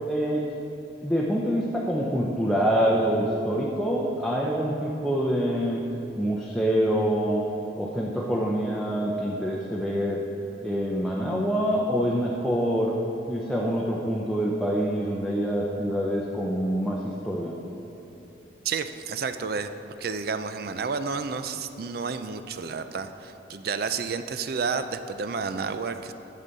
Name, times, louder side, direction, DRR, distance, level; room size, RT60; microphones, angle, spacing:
voice 1, 0.1-0.4 1.0-5.8 6.2-7.4 7.8-10.2 10.6-13.0 13.3-17.6, equal, ahead, -3 dB, 0.6 m, -26 dB
voice 2, 18.6-19.7 20.0-26.1, right 5 dB, 55° right, 10 dB, 0.4 m, -30 dB
11.0 x 8.3 x 4.0 m, 3.0 s
head